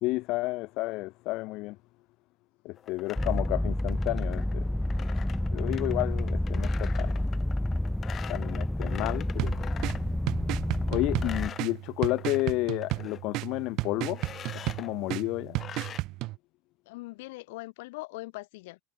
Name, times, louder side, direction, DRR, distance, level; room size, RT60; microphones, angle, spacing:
voice 1, 0.0-1.8 2.6-4.7 5.5-7.1 8.3-9.5 10.9-14.2 14.8-15.6, left 20 dB, 50° left, 0.9 m, -31 dB
sound 1, 2.8-10.1 10.5-12.4 12.7-13.2 14.1-14.9 15.6-16.0, left 8 dB, 25° left, 6.1 m, -44 dB
sound 2, 3.2-11.5, left 1 dB, 5° left, 0.7 m, -29 dB
sound 3, 9.4-16.4, right 20 dB, 50° right, 0.3 m, -34 dB
voice 2, 16.9-18.8, left 22 dB, 80° left, 2.5 m, -41 dB
supercardioid pair, 150°, 0 cm